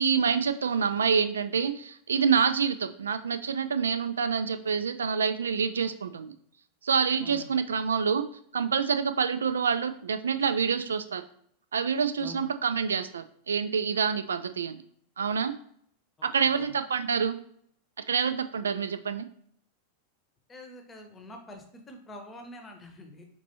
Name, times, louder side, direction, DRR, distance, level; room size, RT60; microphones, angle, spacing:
voice 1, 0.0-6.3 6.8-8.3 8.5-11.2 11.7-14.8 15.2-15.5 16.2-17.4 18.1-19.3, right 6 dB, 70° right, 10 dB, 0.3 m, -27 dB
voice 2, 16.2-16.7 20.5-23.3, left 1 dB, 15° left, 4 dB, 0.8 m, -46 dB
5.1 x 3.1 x 2.7 m, 0.65 s
figure-of-eight pair, 90°, 0 cm